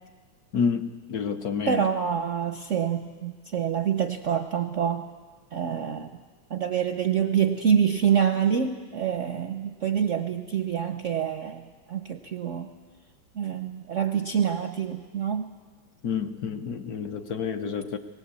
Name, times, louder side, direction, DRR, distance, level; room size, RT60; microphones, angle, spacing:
voice 1, 0.5-1.9 16.0-18.0, left 6 dB, 60° left, 7 dB, 1.1 m, -29 dB
voice 2, 1.7-5.1 5.5-6.1 6.5-12.7 13.3-15.5, right 8 dB, 60° right, 7 dB, 0.7 m, -26 dB
20.0 x 19.0 x 8.2 m, 1.5 s
omnidirectional pair, 2.1 m